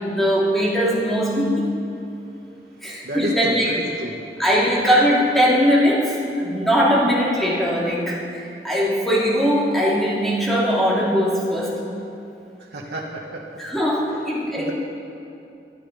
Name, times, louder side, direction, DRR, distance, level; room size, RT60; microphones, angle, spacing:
voice 1, 0.0-1.5 2.8-3.7 4.4-11.8 13.6-14.7, equal, ahead, -6 dB, 3.1 m, -20 dB
voice 2, 3.0-4.2 12.7-13.4 14.6-14.7, right 1 dB, 65° right, -2 dB, 1.5 m, -30 dB
21.0 x 11.0 x 5.4 m, 2.7 s
head